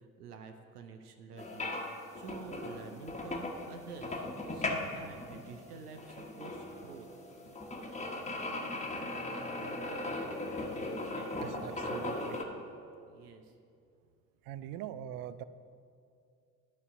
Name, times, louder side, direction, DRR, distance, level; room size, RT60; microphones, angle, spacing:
voice 1, 0.0-1.9 2.1-4.2 4.5-7.1 11.1-12.3 13.1-13.5, right 5 dB, 85° right, 5 dB, 0.7 m, -49 dB
sound 1, 1.4-12.4, left 2 dB, 15° left, 1.2 m, -38 dB
voice 2, 11.4-12.4 14.4-15.4, right 11 dB, 50° right, 14 dB, 0.5 m, -42 dB
11.5 x 4.1 x 6.2 m, 2.4 s
figure-of-eight pair, 60°, 46 cm